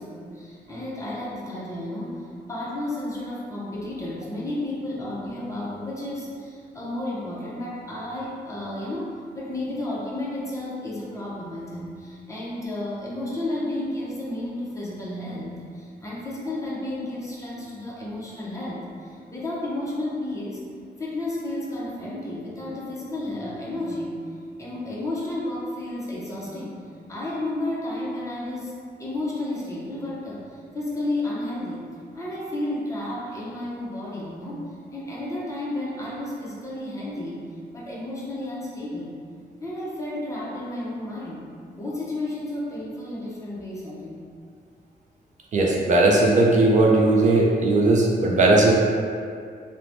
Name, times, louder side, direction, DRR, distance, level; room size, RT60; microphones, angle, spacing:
voice 1, 0.0-20.6 21.0-24.2 24.6-26.8 27.1-31.8 32.1-37.4 37.7-39.2 39.6-41.5 41.8-44.2, left 1 dB, 20° left, -6 dB, 0.6 m, -32 dB
voice 2, 45.5-48.7, right 2 dB, 45° right, -2 dB, 0.4 m, -18 dB
3.0 x 2.1 x 2.5 m, 2.2 s
cardioid pair, 115°, 17 cm